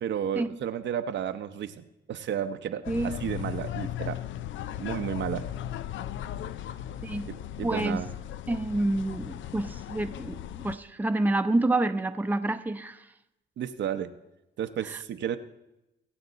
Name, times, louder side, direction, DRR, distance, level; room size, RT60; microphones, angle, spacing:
voice 1, 0.0-4.2 4.8-5.5 7.3-8.1 13.6-14.1 14.6-15.4, right 9 dB, 65° right, 9 dB, 0.8 m, -32 dB
sound 1, 2.8-10.8, left 11 dB, 70° left, 0.5 m, -37 dB
voice 2, 2.9-3.2 7.0-7.3 7.6-8.0 8.5-10.4 10.6-13.0, right 2 dB, 10° right, 8 dB, 0.7 m, -28 dB
22.0 x 8.0 x 4.0 m, 0.92 s
cardioid pair, 90°, 20 cm